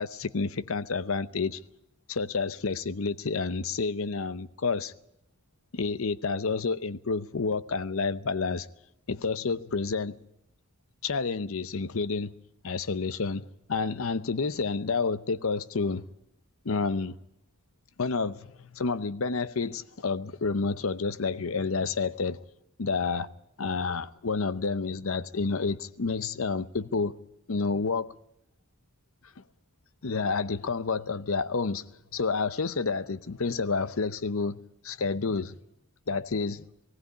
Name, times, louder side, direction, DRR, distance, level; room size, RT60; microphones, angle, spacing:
voice 1, 0.0-1.6 2.1-4.9 5.7-8.7 9.1-10.2 11.0-12.3 12.6-16.0 16.6-17.1 18.0-22.4 22.8-23.3 23.6-27.1 27.5-28.1 30.0-31.8 32.1-34.6 34.8-35.5 36.1-36.7, left 4 dB, 70° left, 0.7 m, -29 dB
18.5 x 16.5 x 9.4 m
head